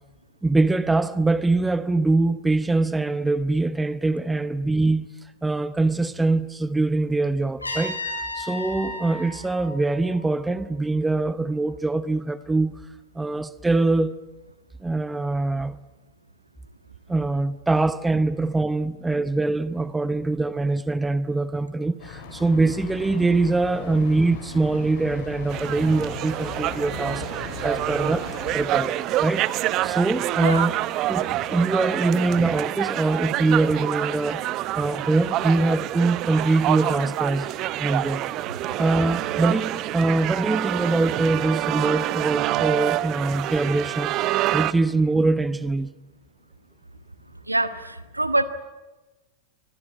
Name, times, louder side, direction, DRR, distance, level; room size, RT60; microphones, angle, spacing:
voice 1, 0.4-5.1 5.4-12.7 13.2-14.2 14.8-15.8 17.1-28.3 28.5-29.5 29.8-30.8 31.1-37.5 37.8-38.2 38.8-44.1 44.5-45.9, right 2 dB, 10° right, 0.8 m, -23 dB
Trumpet, 7.6-10.5, left 2 dB, 80° left, 6.5 m, -34 dB
sound 1, 22.0-28.7, left 5 dB, 55° left, 7.5 m, -38 dB
sound 2, 25.5-44.7, right 15 dB, 35° right, 0.9 m, -27 dB
voice 2, 47.5-48.4, right 2 dB, 85° right, 1.6 m, -24 dB
26.0 x 22.0 x 9.2 m
figure-of-eight pair, 90°, 0 cm